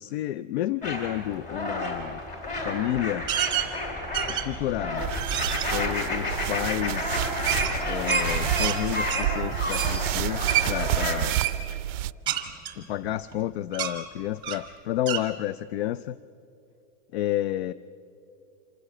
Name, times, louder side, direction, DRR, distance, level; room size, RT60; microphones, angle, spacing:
voice 1, 0.0-2.2 2.6-3.3 4.3-5.1 5.7-7.3 7.8-11.6 12.8-16.2 17.1-17.7, left 13 dB, 55° left, 18 dB, 0.4 m, -30 dB
sound 1, 0.8-11.3, left 2 dB, 20° left, 2.6 m, -31 dB
sound 2, 3.3-3.7 4.1-4.6 5.1-5.7 7.5-8.8 9.1-9.3 9.7-9.9 10.5-10.7 11.3-11.6 12.3-13.4 13.7-13.9 14.4-14.7 15.1-15.2, right 11 dB, 10° right, 0.9 m, -28 dB
sound 3, 5.0-12.1, right 14 dB, 70° right, 0.5 m, -30 dB
26.0 x 14.5 x 7.7 m, 2.6 s
supercardioid pair, 175°, 39 cm